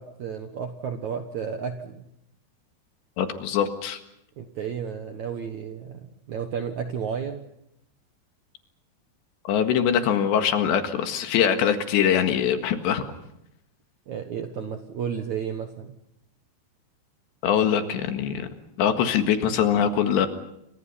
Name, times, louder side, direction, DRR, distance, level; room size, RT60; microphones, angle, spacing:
voice 1, 0.0-2.1 4.4-7.4 14.1-16.0, right 7 dB, 65° right, 6 dB, 1.9 m, -32 dB
voice 2, 3.2-4.0 9.5-13.1 17.4-18.5 18.8-20.3, left 8 dB, 75° left, 6 dB, 3.9 m, -23 dB
29.5 x 24.5 x 5.7 m, 0.80 s
omnidirectional pair, 5.1 m